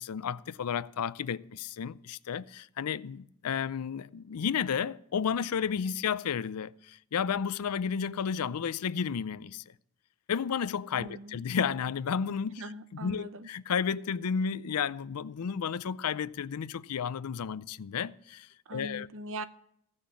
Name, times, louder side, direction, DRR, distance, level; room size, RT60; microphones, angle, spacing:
voice 1, 0.0-9.6 10.3-12.6 13.0-19.1, left 7 dB, 80° left, 0.5 m, -32 dB
voice 2, 11.0-11.4 12.5-13.5 18.7-19.4, right 1 dB, 65° right, 0.7 m, -41 dB
15.5 x 6.4 x 8.3 m
head